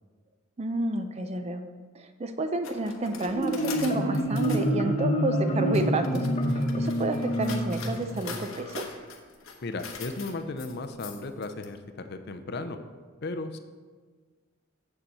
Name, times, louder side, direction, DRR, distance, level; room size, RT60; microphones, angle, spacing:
voice 1, 0.6-1.6 1.9-8.9, right 2 dB, 30° right, 8 dB, 0.4 m, -30 dB
sound 1, 2.6-4.7 5.5-11.7, left 5 dB, 75° left, 1.0 m, -42 dB
Marimba xylophone, 3.2-8.8, equal, 30° left, 1.0 m, -27 dB
voice 2, 9.6-12.8 13.2-13.6, left 3 dB, 50° left, 8 dB, 0.5 m, -35 dB
7.7 x 6.9 x 4.2 m, 1.5 s
head